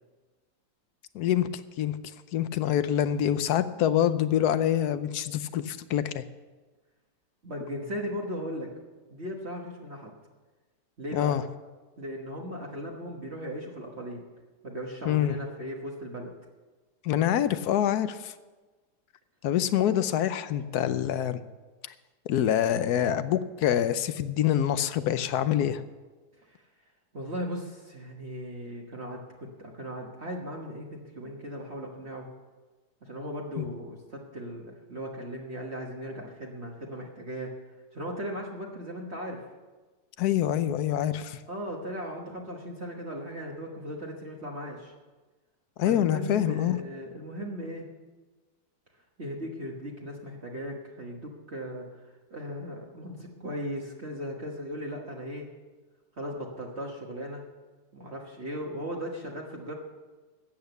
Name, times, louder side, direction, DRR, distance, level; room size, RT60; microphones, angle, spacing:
voice 1, 1.1-1.5 1.8-2.0 2.3-6.2 11.1-11.4 15.1-15.4 17.0-18.3 19.4-21.4 22.3-25.8 33.6-33.7 40.2-41.4 45.8-46.8, left 10 dB, 70° left, 13 dB, 1.1 m, -26 dB
voice 2, 7.4-8.7 9.1-10.1 11.0-11.4 12.0-14.2 14.6-16.3 26.4-26.6 27.1-32.3 33.0-37.5 37.9-39.4 41.5-44.9 45.8-47.9 49.2-55.5 56.2-57.4 57.9-59.7, equal, 40° right, -1 dB, 1.5 m, -37 dB
13.5 x 8.6 x 6.9 m, 1.3 s
omnidirectional pair, 1.8 m